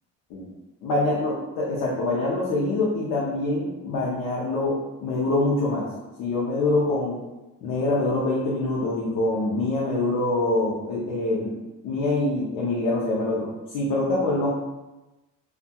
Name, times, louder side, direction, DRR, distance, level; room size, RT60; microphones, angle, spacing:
voice 1, 0.8-5.9 6.2-7.2 7.6-11.5 11.8-13.5 13.7-14.5, left 2 dB, 75° left, -5 dB, 0.6 m, -25 dB
2.7 x 2.3 x 2.2 m, 1.1 s
cardioid pair, 155°, 32 cm